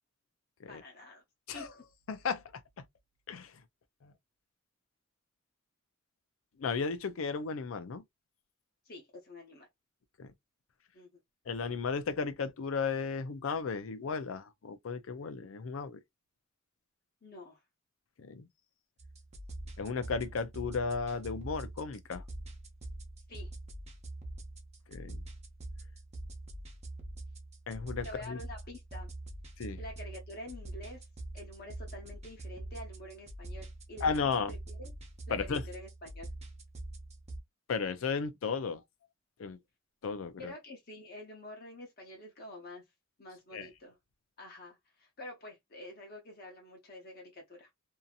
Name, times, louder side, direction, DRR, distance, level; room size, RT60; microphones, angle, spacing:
voice 1, 0.7-1.2 1.5-1.8 8.8-9.7 10.9-11.2 17.2-17.6 23.3-23.5 28.0-29.1 29.8-31.1 31.3-34.9 35.3-36.3 40.4-42.8 43.2-44.0 44.4-47.7, left 1 dB, 50° left, 0.9 m, -48 dB
voice 2, 2.1-2.6 3.3-3.5 4.0-4.1 6.6-8.0 10.2-10.3 11.5-16.0 18.2-18.5 19.8-22.2 24.9-25.2 27.7-28.4 29.6-29.8 34.0-34.5 35.3-35.6 37.7-38.8 39.4-39.6 40.0-40.5 43.5-43.7, left 5 dB, 90° left, 0.5 m, -34 dB
sound 1, 19.0-37.4, right 1 dB, 35° right, 0.8 m, -44 dB
2.8 x 2.6 x 2.4 m
head